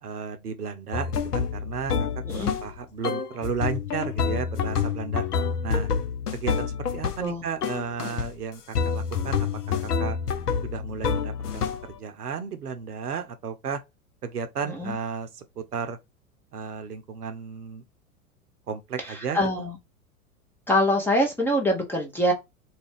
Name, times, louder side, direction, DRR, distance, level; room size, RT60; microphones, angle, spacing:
voice 1, 0.0-2.1 2.3-5.2 5.6-5.9 6.3-9.5 10.0-10.2 10.6-13.8 14.2-16.0 16.5-17.9 18.7-19.7, right 6 dB, 85° right, 0.6 m, -34 dB
sound 1, 0.9-2.8 3.0-7.3 7.6-8.3 8.7-11.9, left 6 dB, 85° left, 0.6 m, -28 dB
voice 2, 2.2-2.6 7.2-7.4 14.7-15.0 19.0-19.8 20.7-22.3, equal, 5° left, 0.6 m, -24 dB
2.4 x 2.3 x 3.4 m
figure-of-eight pair, 90°, 45 cm